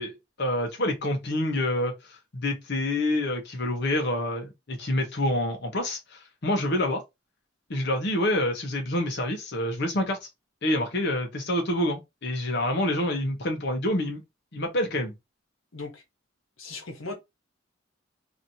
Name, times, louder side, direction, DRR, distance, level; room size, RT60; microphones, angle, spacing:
voice 1, 0.0-1.9 2.3-6.0 6.4-7.0 7.7-10.3 10.6-14.2 14.5-15.1, left 1 dB, 60° left, 1.0 m, -27 dB
voice 2, 15.7-16.0 16.6-17.1, left 3 dB, 90° left, 1.0 m, -37 dB
3.1 x 2.7 x 2.7 m
head